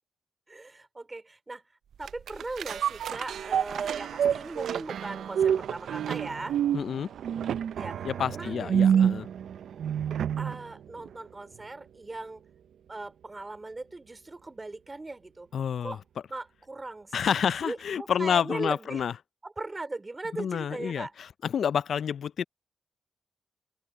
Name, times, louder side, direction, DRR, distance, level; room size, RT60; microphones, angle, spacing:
voice 1, 0.5-1.6 2.0-6.6 7.8-9.1 10.4-12.4 12.9-15.5 15.8-16.0 16.3-19.0 19.4-21.1, right 2 dB, 25° right, 3.5 m, -39 dB
sound 1, 2.0-10.6 11.1-11.2, right 8 dB, 80° right, 0.5 m, -28 dB
voice 2, 6.7-7.1 8.0-9.3 15.5-16.0 17.1-19.1 20.4-22.4, left 8 dB, 70° left, 0.4 m, -29 dB
open air
cardioid pair, 65°, 0 cm